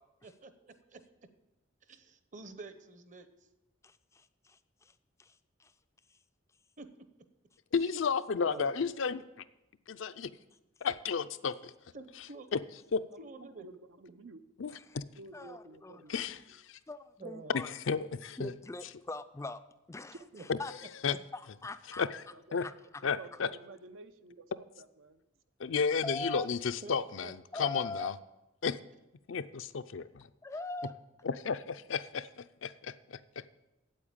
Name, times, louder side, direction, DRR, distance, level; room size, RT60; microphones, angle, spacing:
voice 1, 0.2-1.0 1.9-3.3 6.8-7.1 7.8-8.0 8.4-8.9 11.9-12.5 13.2-13.7 17.2-17.7 20.3-20.4 26.8-27.0 27.2-27.3 27.6-27.7, right 3 dB, 40° right, 10 dB, 0.8 m, -48 dB
voice 2, 3.8-4.9 5.2-5.7 6.1-6.2 14.7-15.0 15.3-16.0 16.9-17.7 18.4-19.6 19.9-20.7 21.1-22.0 22.6-22.7 26.0-26.5 27.5-28.1 30.4-30.9, left 2 dB, 15° left, 11 dB, 0.4 m, -42 dB
voice 3, 7.7-9.2 9.9-10.3 10.8-11.7 12.5-12.6 12.9-13.0 14.6-15.0 16.1-16.8 17.5-18.5 20.5-20.6 21.0-21.2 22.0-22.2 22.5-22.7 23.0-23.5 25.6-28.1 28.6-28.8 29.3-30.3 31.2-33.5, left 5 dB, 70° left, 12 dB, 0.5 m, -33 dB
voice 4, 13.1-14.4 15.2-16.2 22.3-22.6 23.0-24.5 24.8-25.2 25.9-26.0, right 3 dB, 80° right, 10 dB, 0.7 m, -51 dB
8.7 x 8.1 x 8.7 m, 0.98 s
head